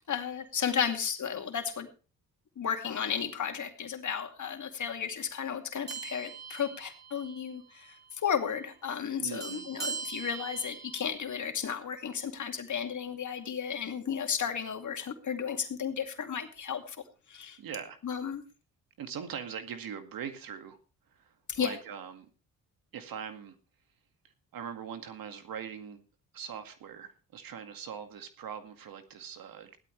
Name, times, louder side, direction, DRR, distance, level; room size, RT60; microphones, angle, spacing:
voice 1, 0.1-1.9 2.6-7.9 8.2-17.0 17.3-17.6 18.0-18.4 21.5-21.8, left 7 dB, 55° left, 5 dB, 2.5 m, -33 dB
sound 1, 5.9-7.5 7.8-8.0 9.4-11.1, right 5 dB, 25° right, 6.2 m, -41 dB
voice 2, 9.2-9.7 17.6-18.0 19.0-20.8 21.2-22.3 22.9-23.6 24.5-26.0 26.3-29.8, right 8 dB, 70° right, 8 dB, 2.1 m, -41 dB
16.5 x 12.0 x 3.3 m, 0.34 s
cardioid pair, 70°, 36 cm